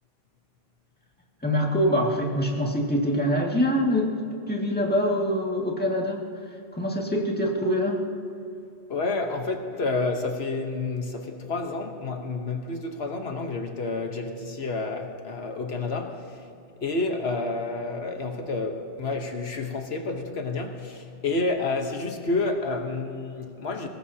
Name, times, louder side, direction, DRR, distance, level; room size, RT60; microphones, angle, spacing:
voice 1, 1.4-4.1 4.5-6.2 6.7-8.1, equal, 10° left, -2 dB, 2.0 m, -24 dB
voice 2, 8.9-16.5 16.8-23.9, left 3 dB, 80° left, 4 dB, 1.4 m, -29 dB
22.0 x 18.5 x 2.8 m, 2.6 s
omnidirectional pair, 1.1 m